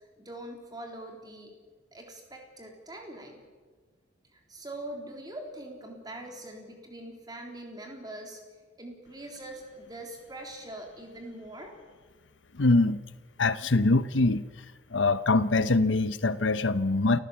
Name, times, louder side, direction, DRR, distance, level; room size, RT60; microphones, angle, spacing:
voice 1, 0.2-1.5 1.9-3.4 4.3-8.4 8.8-11.8, right 1 dB, 20° right, 2 dB, 3.6 m, -43 dB
voice 2, 12.5-13.0 13.4-14.5 14.9-17.2, left 2 dB, 65° left, 14 dB, 0.9 m, -23 dB
29.0 x 15.5 x 7.4 m, 1.4 s
head